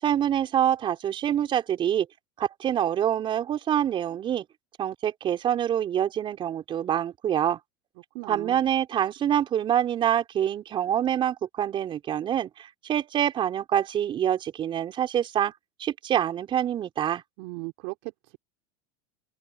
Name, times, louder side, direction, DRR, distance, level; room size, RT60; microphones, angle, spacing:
voice 1, 0.0-2.1 2.4-4.4 4.8-7.6 8.3-15.5 15.8-17.2, right 10 dB, 35° right, 4.6 m, -26 dB
voice 2, 8.1-8.6 17.4-18.4, right 26 dB, 65° right, 3.5 m, -37 dB
open air
supercardioid pair, 105°, 14 cm